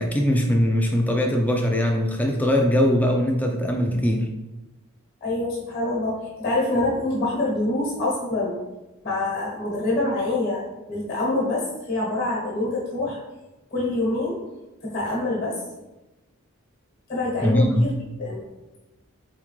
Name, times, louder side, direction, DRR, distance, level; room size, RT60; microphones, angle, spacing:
voice 1, 0.0-4.3 17.4-17.9, equal, 5° left, 2 dB, 0.4 m, -21 dB
voice 2, 5.2-8.6 9.0-13.2 13.7-14.4 14.8-15.6 17.1-17.9 18.2-18.4, left 2 dB, 45° left, -6 dB, 1.3 m, -25 dB
4.2 x 3.6 x 3.1 m, 1.0 s
head